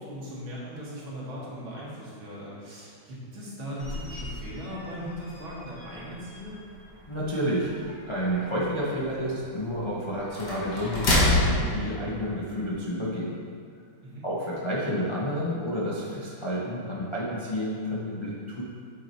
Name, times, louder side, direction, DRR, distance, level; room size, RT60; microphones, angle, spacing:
voice 1, 0.0-6.6 9.2-9.3 14.0-14.2, equal, 80° right, -6 dB, 2.5 m, -39 dB
sound 1, 3.8-12.8, left 1 dB, 60° left, 2.0 m, -31 dB
voice 2, 7.1-13.4 14.2-18.6, equal, 35° left, -7 dB, 0.4 m, -30 dB
8.4 x 4.8 x 4.1 m, 2.2 s
omnidirectional pair, 2.2 m